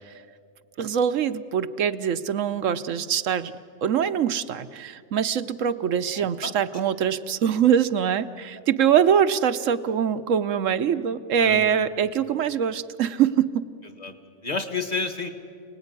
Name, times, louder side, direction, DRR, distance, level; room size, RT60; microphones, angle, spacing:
voice 1, 0.8-3.5 3.8-13.6, right 8 dB, 80° right, 12 dB, 1.2 m, -23 dB
voice 2, 6.1-6.5 11.4-11.8 14.0-14.1 14.4-15.3, left 3 dB, 35° left, 7 dB, 1.8 m, -30 dB
28.5 x 19.0 x 9.7 m, 2.4 s
omnidirectional pair, 1.3 m